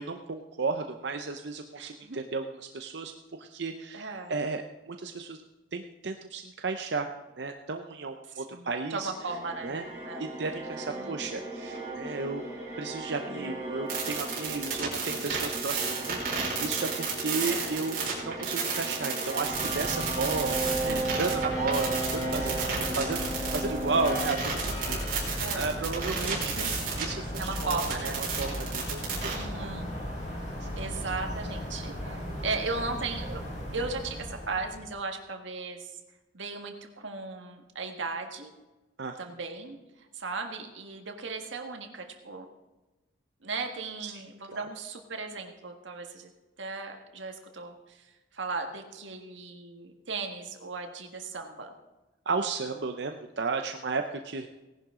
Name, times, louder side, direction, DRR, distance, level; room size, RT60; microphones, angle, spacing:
voice 1, 0.0-5.4 5.7-7.1 7.4-9.1 9.6-9.9 10.2-12.4 12.8-22.7 22.9-27.3 27.6-29.0 29.4-29.7 39.0-39.2 44.0-44.2 44.5-44.7 52.3-54.5, right 4 dB, 65° right, 5 dB, 0.7 m, -34 dB
voice 2, 1.8-2.2 3.9-4.3 8.4-9.8 10.0-10.3 10.9-11.2 13.3-13.6 17.4-17.8 20.9-21.3 25.4-25.6 27.4-28.2 29.3-29.9 30.8-36.0 36.3-38.5 39.2-39.8 40.1-42.5 43.4-46.3 46.6-48.1 48.3-51.7, right 3 dB, 80° right, 4 dB, 1.7 m, -37 dB
sound 1, 9.0-25.3, right 2 dB, 15° right, 5.0 m, -36 dB
sound 2, 13.9-27.1 27.3-29.4, right 5 dB, 50° right, 4.2 m, -32 dB
sound 3, 19.4-34.9, equal, 40° left, 5.4 m, -36 dB
18.0 x 11.0 x 3.8 m, 1.1 s
head